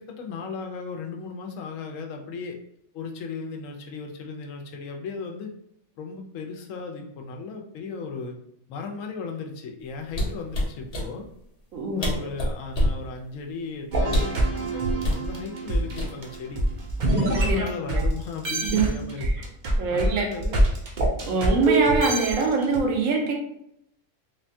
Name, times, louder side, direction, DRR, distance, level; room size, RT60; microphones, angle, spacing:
voice 1, 0.0-2.6 2.9-5.5 6.0-8.4 8.7-11.3 11.9-16.6 17.1-19.3 19.9-20.6, left 4 dB, 85° left, 3 dB, 1.0 m, -36 dB
sound 1, 10.1-11.1 11.7-11.8 12.0-13.0 14.0-14.4 15.0-15.2 16.0-16.4 16.8-17.0, equal, 40° left, 0.6 m, -25 dB
voice 2, 11.7-12.1 17.5-18.0 18.7-18.8 19.2-19.3 19.8-20.3 21.2-23.3, right 3 dB, 85° right, 1 dB, 1.1 m, -23 dB
sound 2, 13.9-18.1 18.4-22.8, right 2 dB, 50° right, 0.6 m, -25 dB
3.4 x 2.2 x 2.6 m, 0.77 s
omnidirectional pair, 1.3 m